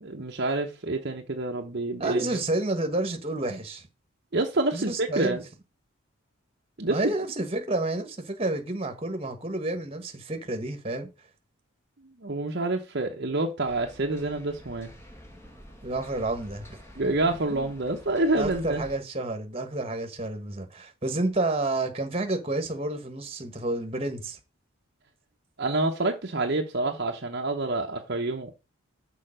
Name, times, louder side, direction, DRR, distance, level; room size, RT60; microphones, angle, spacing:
voice 1, 0.0-2.4 4.3-5.4 6.8-7.1 12.2-14.9 17.0-18.8 25.6-28.5, right 2 dB, 50° right, 0.9 m, -27 dB
voice 2, 2.0-3.9 4.7-5.4 6.9-11.1 15.8-16.8 17.0-17.1 17.5-17.7 18.4-24.4, right 2 dB, 25° right, 1.4 m, -30 dB
sound 1, 13.7-19.0, equal, 10° left, 1.4 m, -48 dB
6.7 x 4.7 x 6.4 m
head